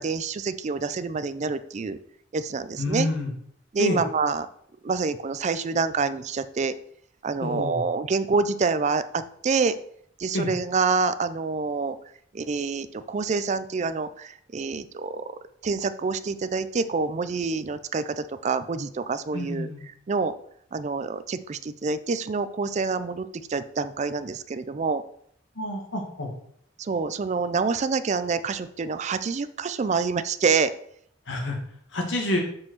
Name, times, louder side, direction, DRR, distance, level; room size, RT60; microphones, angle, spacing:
voice 1, 0.0-2.0 2.3-3.1 3.7-4.5 4.8-6.7 7.2-9.8 10.2-12.0 12.3-15.4 15.6-20.3 20.7-25.0 26.8-30.7, right 4 dB, 40° right, 12 dB, 0.4 m, -27 dB
voice 2, 2.8-3.3 3.8-4.0 7.4-7.8 10.3-10.5 19.3-19.8 25.6-26.3 31.3-31.6 31.9-32.4, left 1 dB, 85° left, 1 dB, 2.1 m, -28 dB
5.7 x 5.0 x 6.3 m, 0.66 s
head